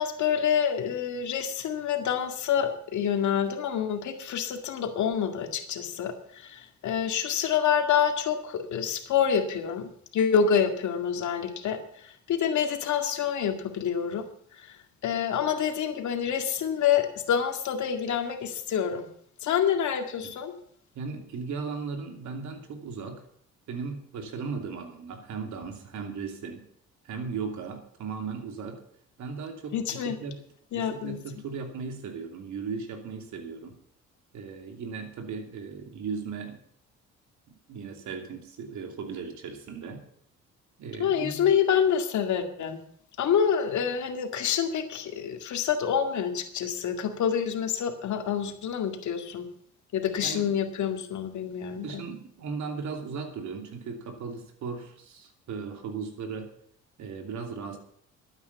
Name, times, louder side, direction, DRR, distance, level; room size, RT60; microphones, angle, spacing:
voice 1, 0.0-14.3 14.5-14.8 15.0-19.1 19.4-20.5 29.7-30.2 30.7-31.2 41.0-42.8 43.2-49.5 49.9-52.0, left 8 dB, 75° left, 5 dB, 2.2 m, -27 dB
voice 2, 20.9-23.2 23.7-26.6 27.0-28.8 29.2-30.4 30.7-33.8 34.3-36.6 37.7-40.0 40.8-41.5 50.2-50.5 51.8-56.5 57.0-57.8, right 5 dB, 75° right, 5 dB, 2.8 m, -37 dB
12.5 x 9.2 x 7.1 m, 0.63 s
cardioid pair, 90°, 30 cm